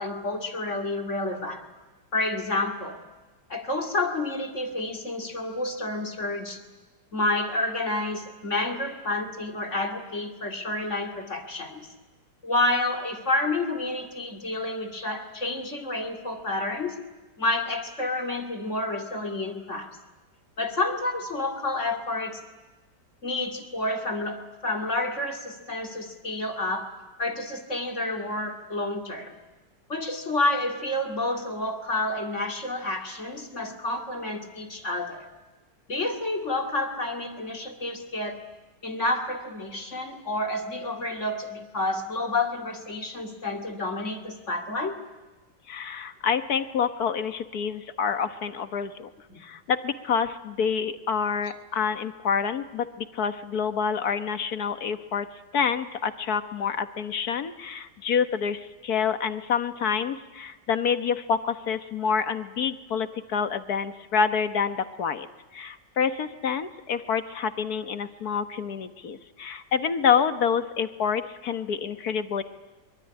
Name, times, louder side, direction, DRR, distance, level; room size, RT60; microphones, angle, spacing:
voice 1, 0.0-1.6 2.1-3.0 3.5-6.6 7.1-11.9 12.4-17.0 17.4-19.9 20.6-22.4 23.2-26.9 27.2-29.4 29.9-35.3 35.9-38.4 38.8-45.0 49.3-49.4, left 2 dB, 40° left, 4 dB, 2.7 m, -29 dB
voice 2, 45.7-49.1 49.4-55.3 55.5-65.3 65.5-72.4, left 6 dB, 60° left, 10 dB, 1.7 m, -27 dB
23.5 x 23.5 x 9.9 m, 1.2 s
omnidirectional pair, 1.9 m